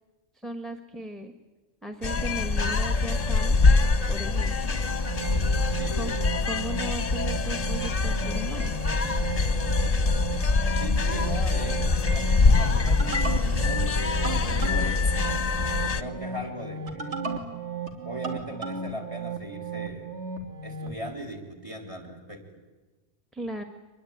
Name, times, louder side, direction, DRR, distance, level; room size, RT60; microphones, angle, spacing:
voice 1, 0.3-1.3 1.8-3.6 4.1-4.8 5.9-6.2 6.4-8.7 23.3-23.6, right 1 dB, ahead, 8 dB, 1.3 m, -37 dB
sound 1, 2.0-16.0, left 3 dB, 35° left, 1.1 m, -24 dB
sound 2, 4.9-21.0, right 4 dB, 75° right, 3.1 m, -35 dB
voice 2, 5.8-6.1 10.8-11.8 12.1-15.3 15.9-17.5 17.8-20.1 20.6-22.4, equal, 30° right, 5 dB, 4.0 m, -39 dB
25.0 x 21.5 x 9.5 m, 1.2 s
omnidirectional pair, 1.2 m